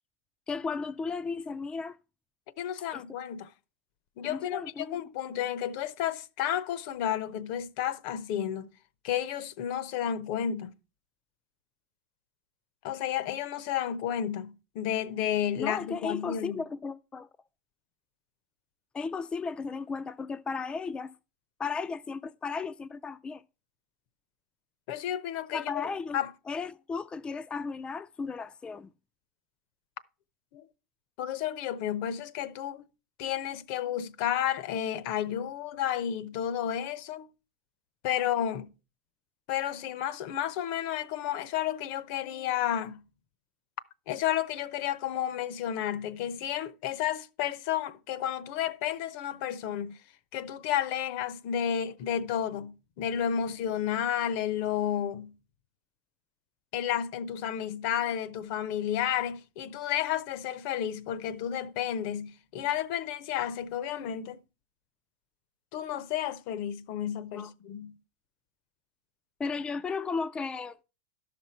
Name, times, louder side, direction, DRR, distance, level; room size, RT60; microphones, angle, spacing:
voice 1, 0.5-2.0 2.9-3.0 4.2-5.0 15.6-17.3 18.9-21.1 21.6-23.4 25.5-26.2 26.5-28.9 67.3-67.5 69.4-70.8, left 4 dB, 15° left, 0.4 m, -35 dB
voice 2, 2.6-3.5 4.2-8.7 9.0-10.7 12.8-16.5 24.9-26.3 30.5-30.6 31.2-32.9 33.2-37.3 38.0-38.7 39.5-43.0 44.1-50.0 50.3-55.3 56.7-64.4 65.7-67.9, left 10 dB, 60° left, 0.8 m, -32 dB
12.5 x 6.0 x 4.3 m
hypercardioid pair, 110°, 6 cm